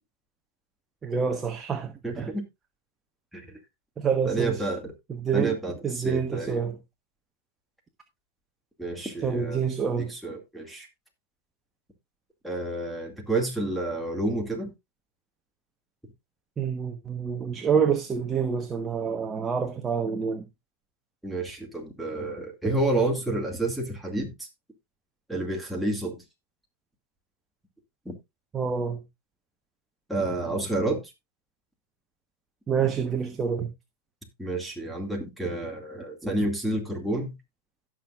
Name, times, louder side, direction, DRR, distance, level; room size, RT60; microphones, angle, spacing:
voice 1, 1.0-2.3 4.0-4.7 5.1-5.6 5.8-6.8 9.2-10.1 16.6-20.4 28.5-29.0 32.7-33.7, right 6 dB, 20° right, 1.1 m, -27 dB
voice 2, 2.0-2.4 3.3-3.5 4.3-4.9 5.3-6.6 8.8-9.6 10.0-10.9 12.4-14.7 21.2-24.5 25.3-26.2 28.1-28.2 30.1-31.0 34.4-37.3, right 2 dB, ahead, 2.2 m, -29 dB
16.5 x 6.2 x 2.4 m
supercardioid pair, 135°, 0 cm